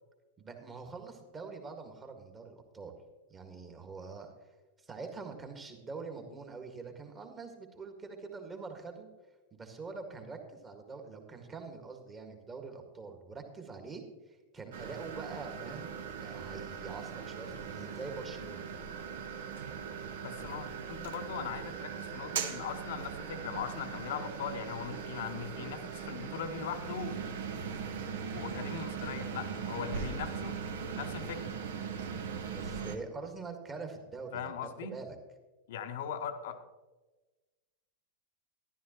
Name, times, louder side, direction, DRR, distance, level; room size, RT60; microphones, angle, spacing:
voice 1, 0.4-2.9 3.3-4.3 4.8-9.1 9.5-14.0 14.3-18.7 20.4-20.5 32.6-34.5 34.8-35.2, right 4 dB, 20° right, 5 dB, 1.8 m, -44 dB
sound 1, 14.7-33.0, right 6 dB, 60° right, 1.0 m, -40 dB
voice 2, 20.2-27.4 27.6-27.7 28.3-30.7 30.9-31.5 34.3-34.9 35.7-36.6, left 7 dB, 55° left, 9 dB, 0.9 m, -40 dB
13.0 x 11.5 x 3.0 m, 1.2 s
figure-of-eight pair, 90°, 0 cm